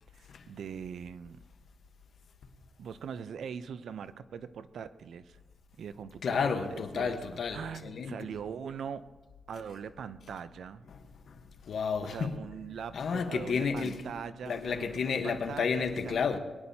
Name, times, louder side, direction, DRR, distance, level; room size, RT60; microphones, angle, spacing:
voice 1, 0.1-1.4 2.8-5.4 5.8-9.1 9.5-10.9 12.0-16.1, right 7 dB, 75° right, 0.5 m, -41 dB
voice 2, 6.2-8.3 10.9-11.0 11.3-12.4 12.9-14.1 14.4-16.4, left 5 dB, 65° left, 1.1 m, -32 dB
22.0 x 10.5 x 2.8 m
wide cardioid pair, 130°, 0 cm